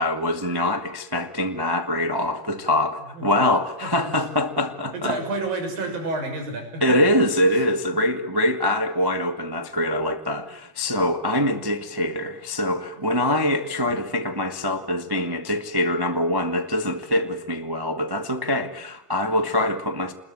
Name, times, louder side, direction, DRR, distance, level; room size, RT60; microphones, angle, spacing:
voice 1, 0.0-5.2 6.8-20.1, left 1 dB, 35° right, 0.3 m, -24 dB
voice 2, 3.1-3.4 3.8-3.9 4.9-7.0 7.4-7.6 7.9-8.0, right 2 dB, 65° right, 8.3 m, -30 dB
27.5 x 21.5 x 9.3 m
omnidirectional pair, 4.3 m